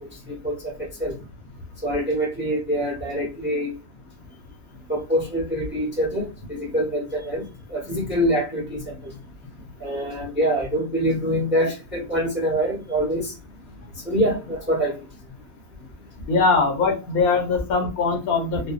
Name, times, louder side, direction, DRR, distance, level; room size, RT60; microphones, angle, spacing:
voice 1, 0.0-1.2 1.8-3.7 4.9-9.2 9.8-13.3 13.9-15.0 18.5-18.6, equal, 10° right, 0.6 m, -25 dB
voice 2, 16.3-18.7, left 4 dB, 80° left, 1.1 m, -21 dB
2.5 x 2.1 x 2.3 m
omnidirectional pair, 1.5 m